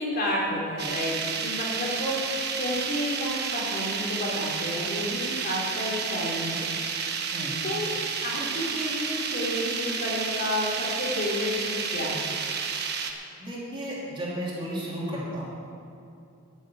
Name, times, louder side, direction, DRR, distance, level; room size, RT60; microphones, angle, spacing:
voice 1, 0.0-6.8 7.6-7.9 8.2-12.3, left 1 dB, 45° left, -4 dB, 3.2 m, -31 dB
sound 1, 0.8-13.1, right 6 dB, 50° right, 1.1 m, -31 dB
voice 2, 13.4-15.5, equal, 25° right, -6 dB, 2.8 m, -33 dB
12.5 x 7.3 x 8.9 m, 2.6 s
head